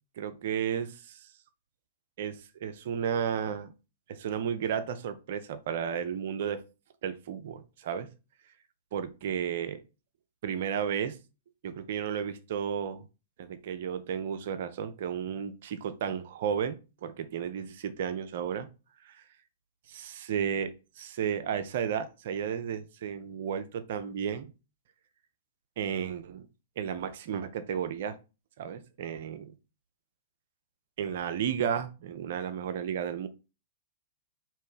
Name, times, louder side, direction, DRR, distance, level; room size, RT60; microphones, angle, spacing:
voice 1, 0.2-1.2 2.2-3.7 4.1-6.6 7.0-8.1 8.9-9.8 10.4-11.2 11.6-13.0 13.4-16.8 17.0-18.7 19.1-19.2 19.9-24.4 25.8-26.5 26.8-28.2 28.6-29.5 31.0-33.3, right 8 dB, 55° right, 10 dB, 0.5 m, -33 dB
3.3 x 3.0 x 4.7 m, 0.31 s
figure-of-eight pair, 105°, 0 cm